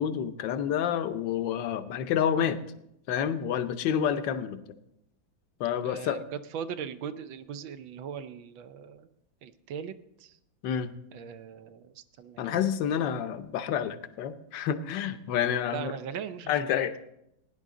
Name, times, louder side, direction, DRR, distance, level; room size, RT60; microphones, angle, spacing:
voice 1, 0.0-2.6 3.1-4.6 5.6-6.2 10.6-10.9 12.4-15.9 16.5-17.0, left 9 dB, 70° left, 10 dB, 1.4 m, -29 dB
voice 2, 5.8-6.3 6.5-9.1 9.4-9.9 10.2-10.4 11.1-12.7 15.7-16.6, right 7 dB, 80° right, 10 dB, 1.4 m, -39 dB
17.0 x 9.9 x 3.7 m, 0.80 s
omnidirectional pair, 2.1 m